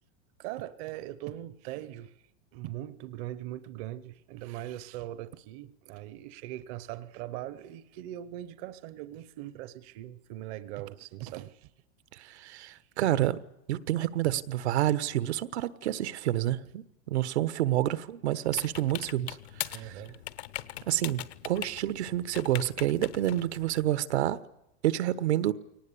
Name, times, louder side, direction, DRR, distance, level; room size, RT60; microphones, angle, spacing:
voice 1, 0.4-2.1 2.5-11.7 12.8-12.9 19.7-20.2, right 14 dB, 35° right, 0.8 m, -40 dB
voice 2, 12.1-13.4 13.7-20.0 20.9-24.4 24.8-25.5, right 13 dB, 80° right, 1.3 m, -29 dB
sound 1, 18.5-23.9, left 15 dB, 70° left, 1.0 m, -41 dB
22.5 x 19.0 x 8.5 m
supercardioid pair, 170°, 33 cm